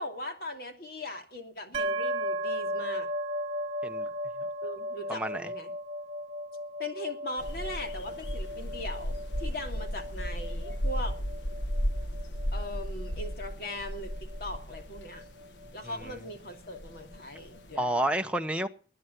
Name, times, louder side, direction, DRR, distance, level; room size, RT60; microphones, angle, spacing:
voice 1, 0.0-3.1 4.6-5.7 6.8-11.1 12.5-15.2 15.7-18.0, left 1 dB, 55° left, 2.6 m, -39 dB
sound 1, 1.7-15.4, equal, 40° right, 2.2 m, -36 dB
voice 2, 5.1-5.5 16.0-16.1 17.8-18.7, right 1 dB, 5° right, 0.8 m, -30 dB
sound 2, 7.4-17.7, equal, 85° left, 1.2 m, -35 dB
19.0 x 10.0 x 6.1 m
head